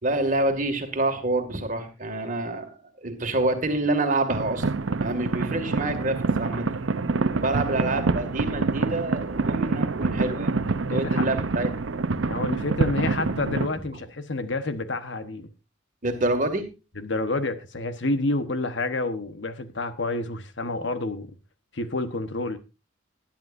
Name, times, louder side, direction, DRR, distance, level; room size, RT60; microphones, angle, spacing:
voice 1, 0.0-2.7 3.0-4.6 5.0-6.7 7.4-10.5 10.9-11.7 16.0-16.7, right 2 dB, 40° right, 2.2 m, -27 dB
sound 1, 4.3-13.7, right 3 dB, 80° right, 0.7 m, -26 dB
voice 2, 10.9-11.3 12.3-15.5 17.0-21.3 21.7-22.6, left 2 dB, 65° left, 1.2 m, -29 dB
20.0 x 10.5 x 2.6 m
head